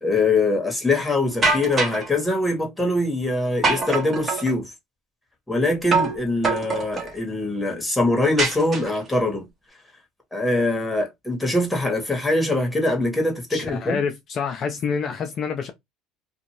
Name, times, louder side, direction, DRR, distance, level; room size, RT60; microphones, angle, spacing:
voice 1, 0.0-4.7 5.5-9.4 10.3-14.0, left 2 dB, 5° left, 1.4 m, -23 dB
sound 1, 1.4-2.1 3.6-4.5 5.9-6.2 6.4-7.1 8.4-9.1, right 3 dB, 30° right, 1.2 m, -23 dB
voice 2, 13.5-15.7, left 6 dB, 45° left, 0.5 m, -27 dB
2.6 x 2.4 x 3.0 m
supercardioid pair, 100°, 0 cm